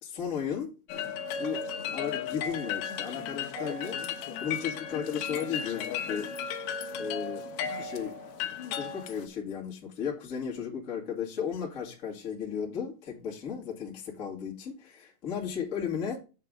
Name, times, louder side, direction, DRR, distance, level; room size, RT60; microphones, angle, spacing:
voice 1, 0.0-6.3 7.0-7.5 7.8-8.2 8.4-16.2, left 7 dB, 30° left, 1.5 m, -35 dB
sound 1, 0.9-9.3, left 7 dB, 75° left, 2.4 m, -35 dB
8.0 x 7.5 x 3.7 m
omnidirectional pair, 5.4 m